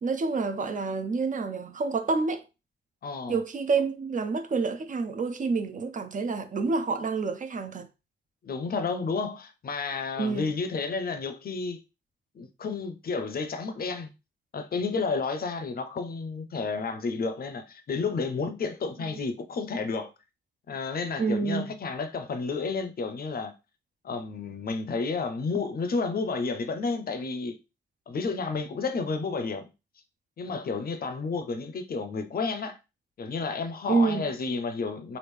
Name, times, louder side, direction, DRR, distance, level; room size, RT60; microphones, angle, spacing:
voice 1, 0.0-2.4 3.3-7.9 10.2-10.5 19.1-19.2 21.2-21.7 33.9-34.3, right 4 dB, 40° right, 0.4 m, -28 dB
voice 2, 3.0-3.4 8.4-11.8 12.4-14.1 14.5-20.1 20.7-23.5 24.0-27.6 28.1-29.7 30.4-32.8 33.2-35.2, left 4 dB, 50° left, 0.5 m, -31 dB
3.1 x 2.4 x 3.4 m
wide cardioid pair, 140°, 20 cm